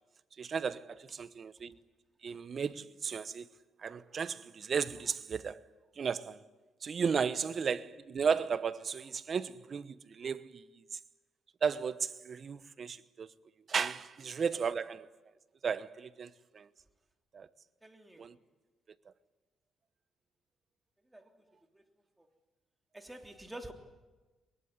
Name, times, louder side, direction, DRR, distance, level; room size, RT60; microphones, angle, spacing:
voice 1, 0.4-1.8 2.2-3.5 3.8-5.7 6.0-6.4 6.8-11.0 11.6-13.3 13.7-15.1 15.6-16.7 17.3-17.5 18.2-18.4, right 6 dB, 45° right, 1.1 m, -35 dB
voice 2, 7.4-7.7 17.8-18.3 21.1-21.4 21.7-21.8 22.2-22.3 22.9-23.7, right 1 dB, 10° right, 3.3 m, -49 dB
23.0 x 22.5 x 9.7 m
cardioid pair, 90°, 0 cm